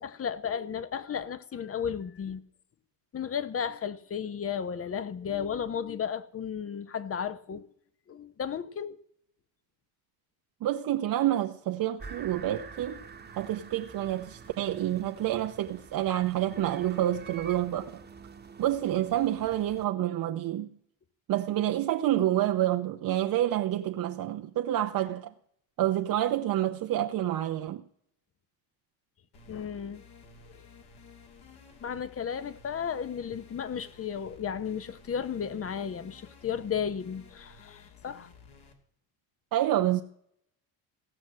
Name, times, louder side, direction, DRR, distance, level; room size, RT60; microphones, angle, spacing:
voice 1, 0.0-2.4 3.1-7.7 8.1-9.0 29.5-30.0 30.5-30.6 31.8-38.3, left 7 dB, 30° left, 0.9 m, -34 dB
voice 2, 10.6-13.0 13.4-18.0 18.6-20.7 21.3-25.3 25.8-27.8 39.5-40.0, right 12 dB, 50° right, 0.8 m, -28 dB
sound 1, 12.0-19.8, right 5 dB, 20° right, 1.3 m, -47 dB
sound 2, 29.3-38.7, left 5 dB, 60° left, 2.6 m, -54 dB
16.5 x 6.1 x 7.5 m
supercardioid pair, 90°, 44 cm